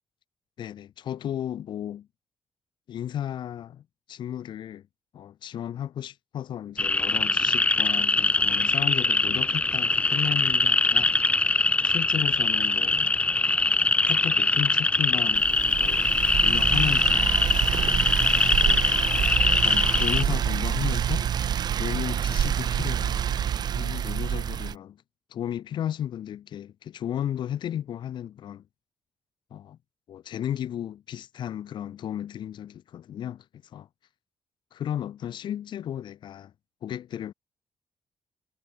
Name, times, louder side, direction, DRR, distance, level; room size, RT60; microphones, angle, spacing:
voice 1, 0.6-2.1 2.9-4.9 5.1-11.1 11.8-13.2 14.1-16.1 16.4-17.4 18.6-19.0 19.6-21.3 21.8-23.5 23.7-25.0 25.3-28.6 29.5-29.8 30.1-33.4 33.7-33.9 34.7-36.5 36.8-37.3, left 10 dB, 75° left, 3.4 m, -34 dB
sound 1, 6.8-20.2, left 3 dB, 15° left, 1.4 m, -23 dB
sound 2, 15.3-24.7, right 9 dB, 60° right, 3.7 m, -27 dB
wide cardioid pair, 165°, 8 cm